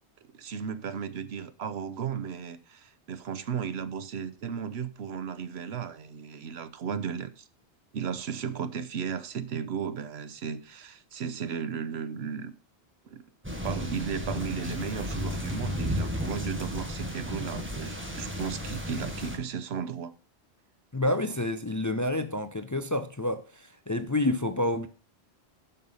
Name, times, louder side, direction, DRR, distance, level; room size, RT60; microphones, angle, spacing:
voice 1, 0.2-7.4 7.9-12.5 13.1-13.2 13.6-20.1, right 7 dB, 75° right, 1.0 m, -35 dB
sound 1, 13.4-19.4, left 1 dB, 10° right, 1.4 m, -33 dB
voice 2, 20.9-24.9, left 1 dB, 25° left, 0.5 m, -29 dB
11.0 x 5.7 x 5.5 m
omnidirectional pair, 1.1 m